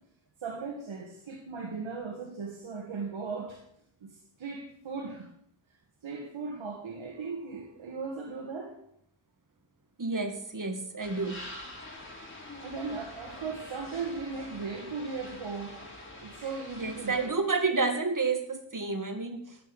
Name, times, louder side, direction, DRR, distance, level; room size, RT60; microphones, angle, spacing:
voice 1, 0.4-3.6 4.0-5.3 6.0-8.8 12.6-15.8 16.2-17.4, right 4 dB, 80° right, 1 dB, 1.8 m, -37 dB
voice 2, 10.0-11.4 16.8-19.6, right 4 dB, 40° right, 6 dB, 2.3 m, -30 dB
sound 1, 11.0-17.3, left 1 dB, 25° left, 4.3 m, -45 dB
14.0 x 6.9 x 8.1 m, 0.71 s
cardioid pair, 45°, 46 cm